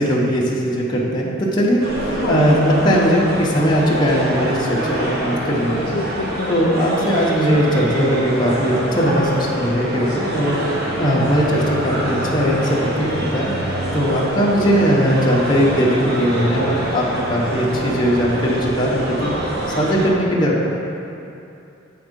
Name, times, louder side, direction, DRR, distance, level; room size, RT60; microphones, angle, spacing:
voice 1, 0.0-5.9 6.5-13.5 13.9-19.3 19.8-20.7, equal, 20° left, -5 dB, 0.8 m, -19 dB
sound 1, 1.8-20.1, right 1 dB, 50° right, 0.9 m, -25 dB
voice 2, 2.1-2.5 5.7-6.5 14.5-14.8, left 2 dB, 85° left, -1 dB, 0.5 m, -28 dB
7.7 x 3.5 x 5.2 m, 2.7 s
head